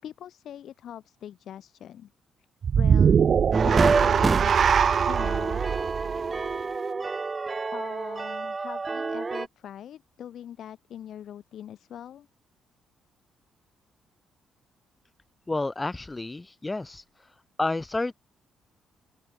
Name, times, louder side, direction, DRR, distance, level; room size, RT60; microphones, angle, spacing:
voice 1, 0.0-2.1 2.8-3.2 3.6-4.5 5.1-5.6 7.7-12.3, left 10 dB, 70° left, 4.9 m, -42 dB
sound 1, 2.6-7.0, right 7 dB, 50° right, 2.0 m, -22 dB
sound 2, 3.5-9.5, right 4 dB, 30° right, 4.5 m, -28 dB
voice 2, 15.5-17.0 17.6-18.1, left 2 dB, 20° left, 4.0 m, -30 dB
open air
cardioid pair, 90°, 0 cm